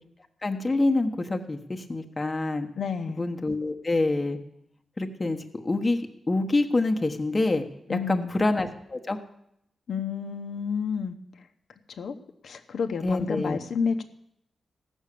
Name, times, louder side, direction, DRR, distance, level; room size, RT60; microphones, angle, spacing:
voice 1, 0.4-2.7 3.2-4.4 5.0-6.0 6.3-7.6 7.9-9.2 13.0-13.6, left 2 dB, 20° left, 4 dB, 1.1 m, -26 dB
voice 2, 2.8-3.3 7.9-8.3 9.9-11.2 12.0-12.1 12.4-14.0, left 6 dB, 65° left, 6 dB, 0.9 m, -30 dB
15.5 x 6.3 x 8.4 m, 0.77 s
wide cardioid pair, 135°, 0 cm